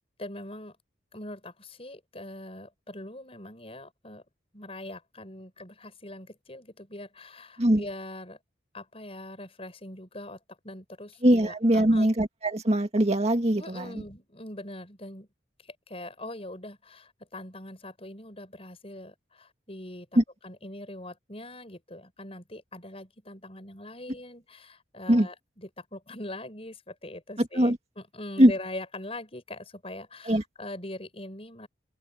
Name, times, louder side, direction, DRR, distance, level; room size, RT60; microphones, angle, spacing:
voice 1, 0.2-0.8 1.1-4.2 4.5-8.4 8.7-12.1 13.6-15.3 15.6-20.1 20.4-31.7, left 1 dB, 35° left, 6.8 m, -42 dB
voice 2, 11.2-13.9 20.2-20.3 25.1-25.3 27.6-27.8 28.4-28.5 30.3-30.4, right 1 dB, 35° right, 2.0 m, -21 dB
open air
head